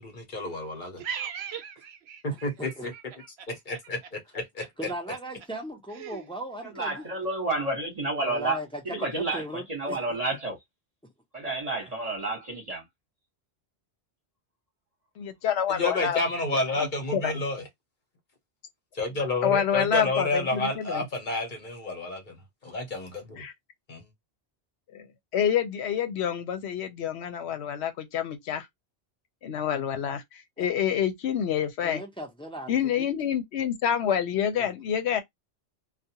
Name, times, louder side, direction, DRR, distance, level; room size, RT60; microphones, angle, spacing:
voice 1, 0.0-1.0 2.2-2.9 3.5-4.9 15.7-17.6 18.9-22.4 22.6-23.4 23.9-24.1, left 2 dB, 50° left, 0.9 m, -30 dB
voice 2, 1.0-2.5 2.9-3.3 6.0-6.2, right 8 dB, 70° right, 0.8 m, -38 dB
voice 3, 2.3-2.9 4.8-7.0 8.2-10.0 30.6-30.7 31.8-33.1 34.6-34.8, right 1 dB, 5° left, 0.5 m, -38 dB
voice 4, 6.6-10.6 11.3-12.8, right 2 dB, 35° right, 1.0 m, -30 dB
voice 5, 15.2-16.2 16.8-16.9 17.1-17.4 19.4-21.1 23.4-23.5 24.9-25.1 25.3-28.7 29.4-32.0 32.7-35.2, left 8 dB, 75° left, 0.8 m, -27 dB
2.4 x 2.2 x 2.7 m
omnidirectional pair, 1.1 m